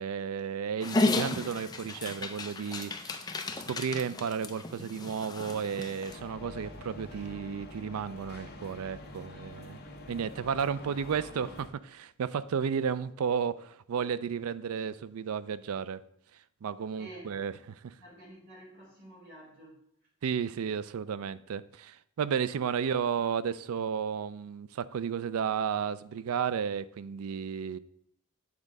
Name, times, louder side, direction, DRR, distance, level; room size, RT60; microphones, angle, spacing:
voice 1, 0.0-3.3 3.7-9.8 10.1-16.0 16.6-17.9 20.2-27.8, right 7 dB, 80° right, 0.4 m, -33 dB
Dog, 0.8-6.2, left 2 dB, 20° left, 0.4 m, -33 dB
sound 1, 6.1-11.7, left 1 dB, 45° left, 1.0 m, -46 dB
voice 2, 10.8-11.4 17.0-17.4 17.9-19.8, right 1 dB, 50° right, 2.1 m, -50 dB
8.2 x 3.7 x 5.2 m
head